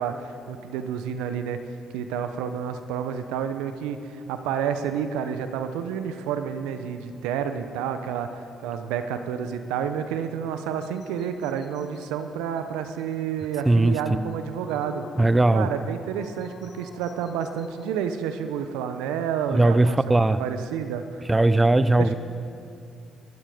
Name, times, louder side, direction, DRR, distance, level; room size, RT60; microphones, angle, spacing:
voice 1, 0.0-1.6 1.9-15.1 15.5-20.0 20.4-21.2 21.9-22.1, right 8 dB, 80° right, 9 dB, 0.9 m, -30 dB
sound 1, 10.8-12.1 12.6-12.7 13.0-13.1 13.4-13.5 13.8-13.9 14.3-18.0, left 4 dB, 60° left, 1.7 m, -48 dB
voice 2, 13.7-14.4 15.2-15.7 19.5-20.4 21.3-22.1, right 2 dB, 20° right, 14 dB, 0.6 m, -19 dB
22.5 x 12.5 x 5.2 m, 2.5 s
hypercardioid pair, 55°, 0 cm